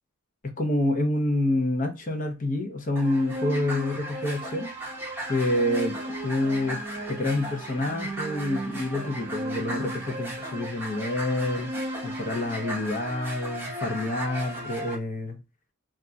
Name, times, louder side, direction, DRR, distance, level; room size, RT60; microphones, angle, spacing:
voice 1, 0.4-4.7 5.3-5.9 6.2-6.8 7.1-11.7 12.0-15.4, left 1 dB, 40° left, 0.5 m, -27 dB
sound 1, 3.0-14.9, right 1 dB, 10° right, 0.7 m, -34 dB
2.3 x 2.1 x 3.8 m
head